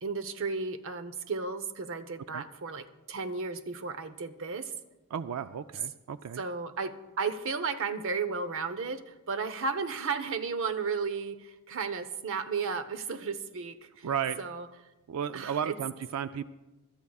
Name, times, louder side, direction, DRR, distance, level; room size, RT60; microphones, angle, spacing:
voice 1, 0.0-4.7 6.4-14.1 14.4-14.7 15.3-15.8, right 5 dB, 65° right, 11 dB, 0.8 m, -34 dB
voice 2, 5.1-6.4 14.0-14.4 15.1-16.4, right 8 dB, 85° right, 12 dB, 0.4 m, -33 dB
25.0 x 13.0 x 2.4 m, 1.1 s
head